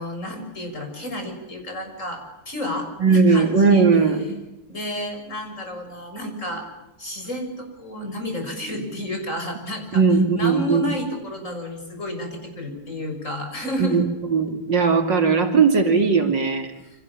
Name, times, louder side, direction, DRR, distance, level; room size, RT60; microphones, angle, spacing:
voice 1, 0.0-3.9 4.7-6.7 7.0-14.1, left 1 dB, 35° left, 4 dB, 7.0 m, -31 dB
voice 2, 3.0-4.4 9.9-10.9 13.8-16.7, right 5 dB, 55° right, 5 dB, 3.1 m, -18 dB
29.5 x 26.0 x 7.3 m, 0.98 s
omnidirectional pair, 2.3 m